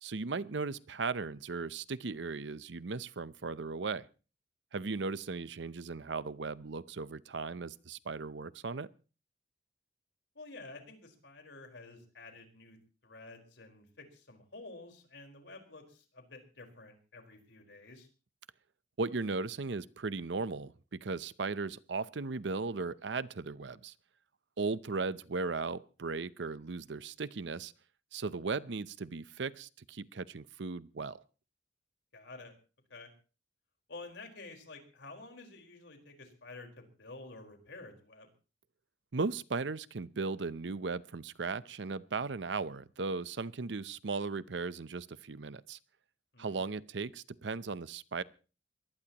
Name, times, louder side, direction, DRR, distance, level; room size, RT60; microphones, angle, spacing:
voice 1, 0.0-4.1 4.7-8.9 19.0-23.9 24.6-27.7 28.1-31.2 39.1-45.8 46.4-48.2, right 4 dB, 75° right, 17 dB, 0.7 m, -37 dB
voice 2, 10.3-12.8 13.0-18.1 32.1-32.5 32.9-33.1 33.9-38.3 46.3-46.7, left 3 dB, 75° left, 4 dB, 4.5 m, -50 dB
23.0 x 18.5 x 3.0 m, 0.36 s
head